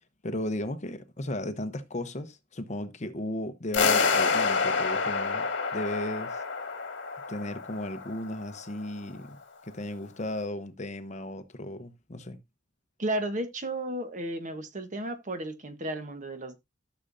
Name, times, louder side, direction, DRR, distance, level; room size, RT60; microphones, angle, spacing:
voice 1, 0.2-6.4 7.3-12.4, left 1 dB, 40° left, 0.9 m, -35 dB
sound 1, 3.7-8.7, left 4 dB, 70° left, 1.7 m, -28 dB
voice 2, 13.0-16.6, right 1 dB, 40° right, 1.3 m, -33 dB
13.5 x 6.7 x 2.7 m
head